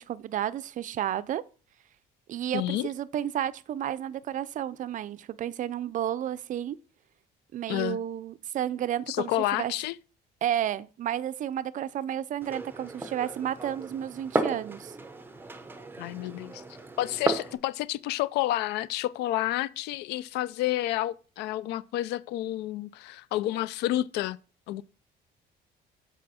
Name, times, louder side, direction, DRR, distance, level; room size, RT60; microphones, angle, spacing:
voice 1, 0.0-1.4 2.3-6.8 7.5-9.7 10.4-14.9, right 11 dB, 50° right, 0.4 m, -32 dB
voice 2, 2.5-2.9 7.7-8.0 9.1-10.0 16.0-16.6 17.0-24.4 24.7-24.8, left 15 dB, 85° left, 0.4 m, -30 dB
Glass, 12.4-17.6, right 2 dB, 10° right, 0.8 m, -34 dB
7.6 x 4.9 x 4.2 m
cardioid pair, 110°, 17 cm